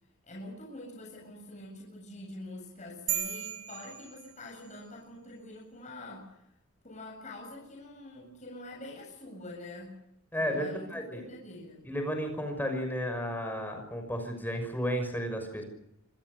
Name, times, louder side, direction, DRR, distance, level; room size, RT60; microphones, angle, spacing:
voice 1, 0.2-6.5 6.8-10.0 10.4-11.9, left 1 dB, 35° left, -1 dB, 7.9 m, -45 dB
sound 1, 3.1-4.8, right 9 dB, 75° right, 7.5 m, -36 dB
voice 2, 10.3-11.2 11.9-15.6, equal, 10° left, 5 dB, 6.0 m, -33 dB
27.0 x 21.5 x 6.8 m, 0.81 s
head